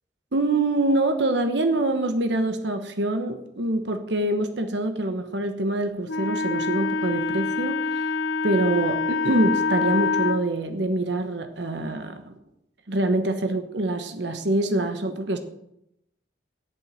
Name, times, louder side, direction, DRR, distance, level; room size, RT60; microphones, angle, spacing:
voice 1, 0.3-8.1 8.4-12.3 12.9-15.4, right 2 dB, 70° right, 7 dB, 1.1 m, -25 dB
Wind instrument woodwind instrument, 6.1-10.4, left 4 dB, 80° left, 0.7 m, -25 dB
8.9 x 7.4 x 8.8 m, 0.80 s
head